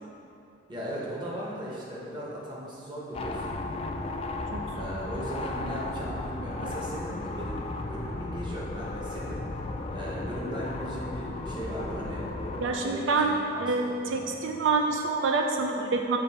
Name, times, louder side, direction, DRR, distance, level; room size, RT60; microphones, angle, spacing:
voice 1, 0.7-3.6 4.7-9.5 9.9-12.2 12.6-14.3, equal, 25° right, -6 dB, 1.0 m, -38 dB
sound 1, 3.1-12.7, left 2 dB, 30° left, 0.3 m, -35 dB
voice 2, 4.5-4.9 12.6-13.3 13.6-16.2, right 3 dB, 85° right, 3 dB, 0.4 m, -27 dB
6.8 x 3.3 x 4.2 m, 2.7 s
head